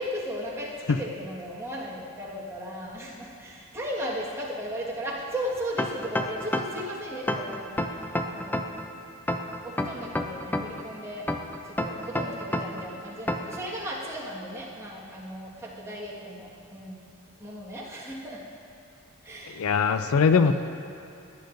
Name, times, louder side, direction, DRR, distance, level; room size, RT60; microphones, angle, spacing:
voice 1, 0.0-8.5 9.6-11.3 11.6-17.0 17.4-18.4 19.2-19.6 20.1-20.5, equal, 15° right, -6 dB, 1.6 m, -36 dB
sound 1, 5.8-6.9 7.3-8.8 9.3-10.8 11.3-12.8 13.3-13.6, left 1 dB, 10° left, 0.4 m, -28 dB
voice 2, 19.6-20.5, left 5 dB, 80° left, 10 dB, 0.4 m, -21 dB
17.0 x 9.4 x 2.6 m, 2.6 s
head